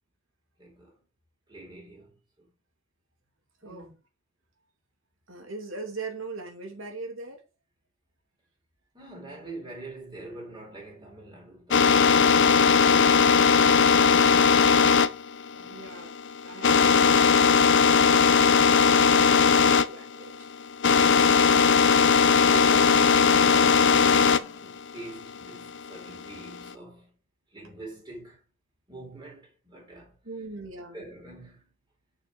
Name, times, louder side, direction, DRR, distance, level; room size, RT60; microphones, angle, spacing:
voice 1, 0.6-0.9 1.5-2.5 3.6-3.9 8.9-14.2 15.5-16.0 22.5-27.1 27.5-28.4 28.9-30.2 30.9-31.7, right 2 dB, 20° right, 3.8 m, -44 dB
voice 2, 3.6-4.0 5.3-7.4 15.7-16.2 16.4-20.5 30.2-31.0, right 3 dB, 65° right, 2.8 m, -41 dB
sound 1, 11.7-19.9 20.1-24.4 24.9-26.7, left 6 dB, 60° left, 0.6 m, -19 dB
6.7 x 5.9 x 6.3 m
head